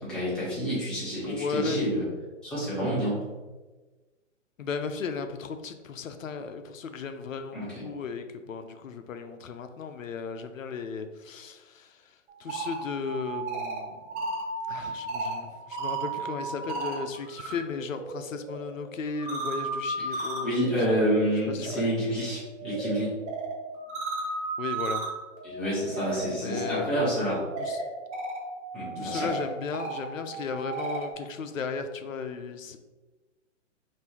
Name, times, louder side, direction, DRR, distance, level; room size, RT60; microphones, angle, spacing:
voice 1, 0.0-2.0 2.4-3.2 7.5-7.8 20.1-23.1 25.4-27.4 28.7-29.3, equal, 5° left, -9 dB, 0.4 m, -28 dB
voice 2, 1.3-1.8 4.6-12.0 12.4-14.0 14.7-21.0 21.5-21.9 24.6-25.0 26.4-26.9 27.6-27.8 29.0-32.8, left 5 dB, 85° left, 8 dB, 0.6 m, -35 dB
sound 1, 12.3-17.5 17.9-31.1, right 3 dB, 30° right, 1.0 m, -35 dB
5.3 x 2.7 x 3.0 m, 1.2 s
hypercardioid pair, 130°, 39 cm